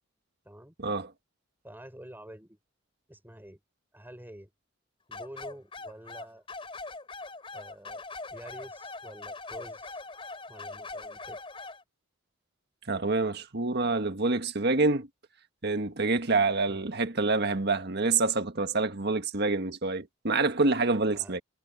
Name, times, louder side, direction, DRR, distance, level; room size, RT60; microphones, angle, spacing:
voice 1, 1.6-2.6 3.1-3.6 3.9-4.5 5.1-6.4 7.5-10.0 10.5-11.4 16.7-16.9 21.1-21.4, right 1 dB, 10° right, 4.9 m, -48 dB
sound 1, 5.1-11.8, left 3 dB, 25° left, 3.9 m, -41 dB
voice 2, 12.9-15.1 15.6-21.4, right 3 dB, 55° right, 1.6 m, -27 dB
head